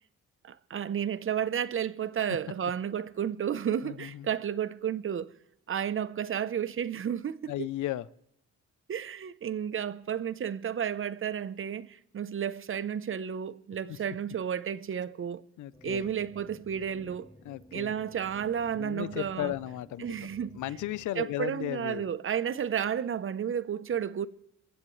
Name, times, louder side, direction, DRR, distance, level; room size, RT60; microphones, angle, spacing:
voice 1, 0.4-5.3 5.7-7.7 8.9-15.4 15.8-17.3 17.7-19.5 20.0-20.6 21.2-24.3, right 8 dB, 45° right, 0.8 m, -32 dB
voice 2, 3.8-4.3 7.5-8.1 13.9-14.0 15.6-16.1 17.4-17.9 18.7-20.0 20.5-22.1, left 14 dB, 75° left, 0.7 m, -35 dB
sound 1, 15.7-21.1, left 1 dB, 10° left, 3.1 m, -53 dB
24.5 x 15.0 x 3.2 m
cardioid pair, 90°, 30 cm